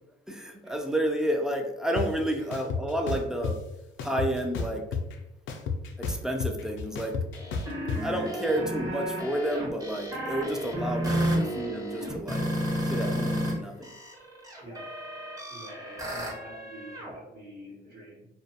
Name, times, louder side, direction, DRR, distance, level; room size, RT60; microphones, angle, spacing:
voice 1, 0.3-3.6 4.0-4.8 6.0-7.2 8.0-12.4 12.8-13.9, right 1 dB, 5° right, 3 dB, 0.3 m, -30 dB
sound 1, 2.0-2.1 2.5-3.5 4.0-5.1 5.5-8.0, left 5 dB, 75° left, 0.4 m, -31 dB
sound 2, 7.3-13.5 13.8-17.1, equal, 20° right, 0.8 m, -32 dB
voice 2, 15.5-18.3, right 1 dB, 55° right, -7 dB, 1.0 m, -46 dB
2.4 x 2.3 x 2.6 m, 0.92 s
cardioid pair, 90°, 20 cm